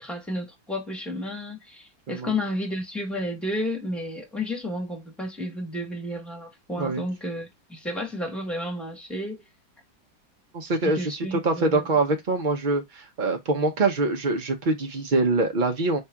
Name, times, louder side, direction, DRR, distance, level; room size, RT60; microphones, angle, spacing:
voice 1, 0.0-9.4 10.8-11.9, left 1 dB, ahead, 0.9 m, -32 dB
voice 2, 10.5-16.0, right 3 dB, 90° right, 0.4 m, -24 dB
4.4 x 3.3 x 3.5 m
omnidirectional pair, 2.0 m